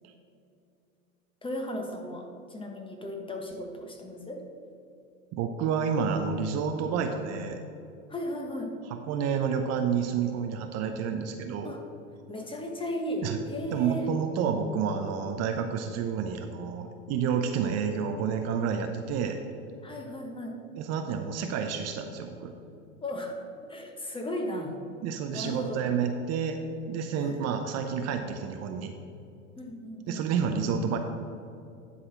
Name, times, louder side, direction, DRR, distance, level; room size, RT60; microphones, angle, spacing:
voice 1, 1.4-4.4 8.1-8.8 11.6-11.8 12.3-14.1 19.8-20.6 23.0-24.7 25.3-25.8 27.2-27.4 29.6-30.2, equal, 15° left, 3 dB, 1.2 m, -36 dB
voice 2, 5.3-7.6 8.9-11.7 13.2-13.4 13.7-19.4 20.8-22.5 25.0-26.6 26.9-28.9 30.1-31.0, right 6 dB, 40° right, 5 dB, 0.7 m, -29 dB
10.5 x 4.2 x 5.8 m, 2.6 s
hypercardioid pair, 95°, 39 cm